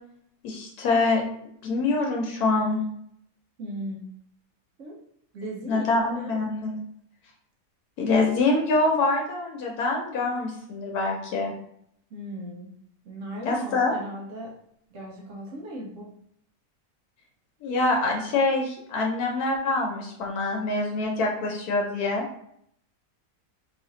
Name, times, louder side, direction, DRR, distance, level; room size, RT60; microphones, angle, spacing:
voice 1, 0.4-1.2 1.6-2.8 5.7-6.7 8.0-11.5 13.4-13.9 17.6-22.3, left 3 dB, 85° left, 0 dB, 1.2 m, -25 dB
voice 2, 3.6-4.1 4.8-5.0 5.3-5.9 6.1-6.4 12.1-12.7 13.0-14.5 14.9-16.1, equal, 65° right, -2 dB, 1.0 m, -37 dB
3.0 x 2.5 x 3.8 m, 0.70 s
omnidirectional pair, 1.6 m